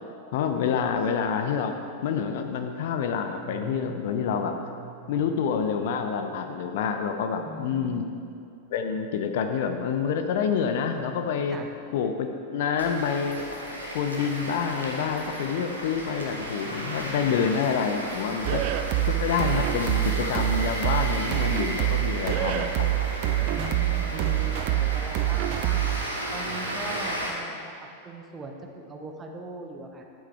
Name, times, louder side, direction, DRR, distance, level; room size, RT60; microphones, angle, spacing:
voice 1, 0.3-1.8 2.0-4.6 5.1-8.0 8.7-11.6 11.9-13.4 13.9-18.6 19.0-22.9, left 6 dB, 55° left, 6 dB, 0.6 m, -27 dB
sound 1, 3.2-6.9, right 3 dB, 85° left, 1.5 m, -46 dB
voice 2, 7.4-8.2 11.5-11.7 23.5-25.9 26.3-27.6 28.0-30.0, right 2 dB, 20° right, 3 dB, 1.0 m, -40 dB
sound 2, 12.8-27.3, right 1 dB, 80° right, 1.2 m, -34 dB
sound 3, 18.4-26.0, right 15 dB, 45° right, 0.4 m, -26 dB
10.5 x 8.4 x 3.4 m, 2.5 s
figure-of-eight pair, 90°, 0 cm